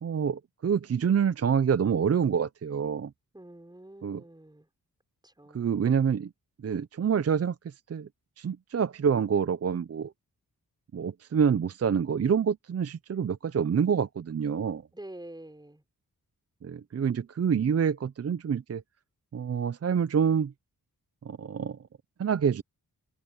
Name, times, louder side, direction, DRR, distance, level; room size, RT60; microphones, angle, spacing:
voice 1, 0.0-3.1 4.0-4.2 5.5-6.3 6.6-8.1 8.4-10.1 10.9-14.8 16.6-18.8 19.3-20.5 21.2-21.8 22.2-22.6, right 7 dB, 40° right, 0.6 m, -27 dB
voice 2, 3.3-4.7 5.2-5.8 14.9-15.8, right 1 dB, 10° right, 6.1 m, -47 dB
wide cardioid pair, 95°, 37 cm